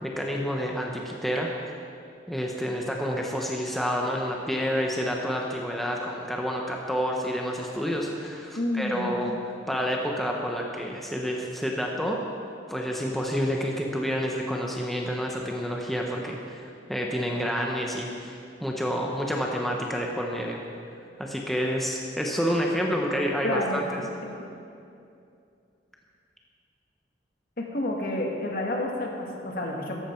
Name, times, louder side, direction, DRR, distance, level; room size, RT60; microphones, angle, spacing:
voice 1, 0.0-1.5 2.3-12.2 12.7-20.6 21.2-24.0, equal, ahead, -1 dB, 0.9 m, -29 dB
voice 2, 8.6-9.1 23.4-23.9 24.3-24.5 27.6-30.0, left 1 dB, 55° left, 0 dB, 1.8 m, -29 dB
14.5 x 11.0 x 4.5 m, 2.5 s
head